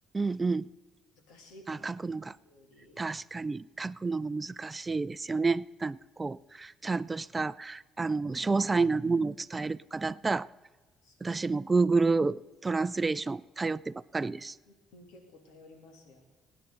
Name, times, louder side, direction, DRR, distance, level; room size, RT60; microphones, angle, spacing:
voice 1, 0.1-0.7 1.7-2.4 3.0-10.5 11.2-14.5, right 4 dB, 25° right, 0.4 m, -30 dB
voice 2, 1.3-1.9 2.4-3.0 11.0-11.4 14.7-16.3, left 1 dB, 85° left, 2.8 m, -55 dB
23.5 x 9.9 x 3.9 m
supercardioid pair, 75°, 0 cm